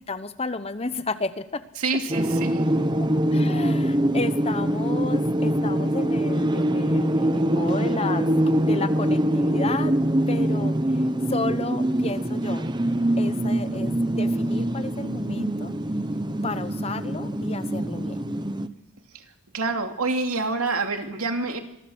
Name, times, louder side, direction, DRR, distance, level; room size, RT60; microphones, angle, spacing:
voice 1, 0.1-1.6 3.0-10.0 10.3-10.8 11.3-12.7 13.2-15.7 16.4-18.2, left 3 dB, 25° left, 12 dB, 0.9 m, -32 dB
voice 2, 1.8-2.7 19.1-19.2 19.5-21.6, right 3 dB, 80° right, 5 dB, 2.7 m, -27 dB
sound 1, 2.1-18.7, right 1 dB, 20° right, 0.9 m, -24 dB
25.5 x 21.0 x 6.3 m, 0.86 s
head